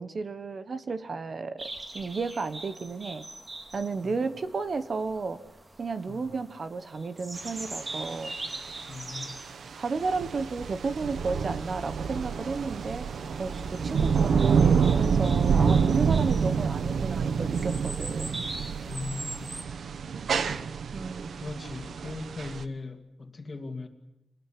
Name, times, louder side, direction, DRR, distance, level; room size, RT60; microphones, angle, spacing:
voice 1, 0.0-3.2 3.7-5.4 5.8-8.4 9.8-13.1 13.4-18.4 20.9-21.5, right 4 dB, 45° right, 1.2 m, -33 dB
sound 1, 1.6-19.7, right 2 dB, 25° right, 2.0 m, -43 dB
sound 2, 7.4-22.6, right 6 dB, 75° right, 1.1 m, -27 dB
voice 2, 8.9-9.4 18.9-19.5 21.4-23.9, left 3 dB, 35° left, 2.4 m, -39 dB
26.0 x 18.5 x 9.9 m
wide cardioid pair, 130°, 0 cm